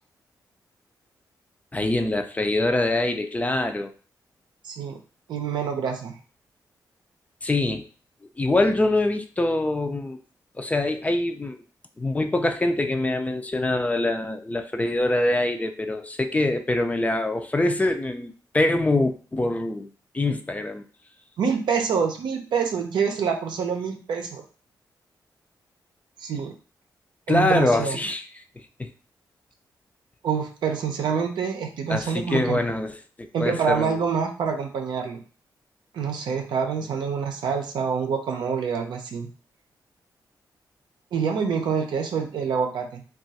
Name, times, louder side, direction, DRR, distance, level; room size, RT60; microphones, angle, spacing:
voice 1, 1.7-3.9 7.4-7.9 8.4-10.2 10.6-11.6 12.0-19.9 20.1-20.8 27.3-28.2 28.8-28.9 31.9-34.0, left 2 dB, 20° left, 7 dB, 0.4 m, -24 dB
voice 2, 4.6-5.0 5.3-6.1 21.4-24.4 26.2-26.5 27.3-28.0 30.2-32.6 33.3-35.2 35.9-39.3 41.1-43.0, right 6 dB, 90° right, 4 dB, 0.6 m, -26 dB
2.4 x 2.3 x 4.0 m, 0.38 s
cardioid pair, 80°, 8 cm